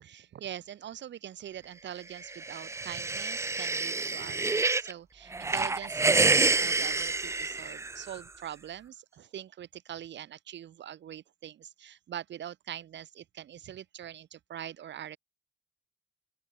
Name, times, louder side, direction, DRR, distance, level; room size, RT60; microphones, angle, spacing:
voice 1, 0.0-15.2, right 10 dB, 65° right, 2.0 m, -43 dB
sound 1, 2.2-4.9 5.3-8.2, right 3 dB, 15° right, 0.4 m, -28 dB
open air
cardioid pair, 90°, 20 cm